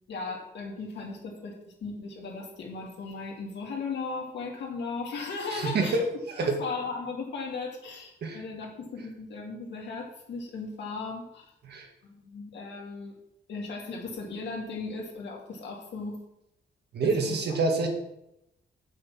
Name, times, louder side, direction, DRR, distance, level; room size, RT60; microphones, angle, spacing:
voice 1, 0.1-6.0 6.4-11.5 12.0-13.2 13.5-16.2 17.0-17.4, left 4 dB, 85° left, -1 dB, 2.5 m, -37 dB
voice 2, 5.5-6.0 6.3-6.6 8.2-8.4 11.6-11.9 16.9-17.9, right 3 dB, 70° right, 1 dB, 1.8 m, -27 dB
7.6 x 6.2 x 6.0 m, 0.84 s
wide cardioid pair, 165°, 18 cm